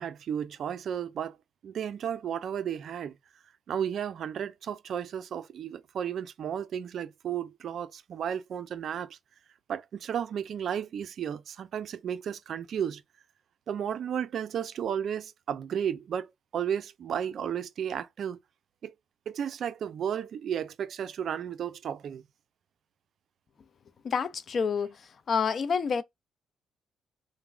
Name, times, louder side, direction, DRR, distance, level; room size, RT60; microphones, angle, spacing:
voice 1, 0.0-1.4 1.6-3.1 3.7-9.2 9.7-13.0 13.7-18.4 18.8-18.9 19.3-22.2, right 8 dB, 60° right, 0.4 m, -33 dB
voice 2, 24.0-25.0 25.3-26.0, left 6 dB, 50° left, 0.4 m, -28 dB
3.2 x 2.1 x 2.4 m
cardioid pair, 90°, 0 cm